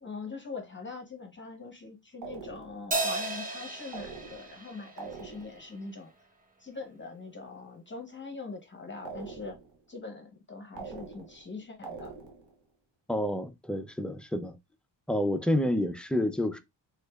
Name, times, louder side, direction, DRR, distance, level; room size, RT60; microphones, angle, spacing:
voice 1, 0.0-6.1 6.6-9.6 9.9-12.1, left 4 dB, 25° left, 0.7 m, -42 dB
sound 1, 2.2-2.9 3.9-4.6 5.0-5.7 9.0-9.8 10.8-11.5 11.8-12.6, right 4 dB, 90° right, 0.9 m, -44 dB
Crash cymbal, 2.9-5.6, right 2 dB, 20° right, 0.7 m, -34 dB
voice 2, 13.1-14.6 15.1-16.6, left 1 dB, 5° left, 0.3 m, -29 dB
3.7 x 3.1 x 2.2 m
cardioid pair, 95°, 43 cm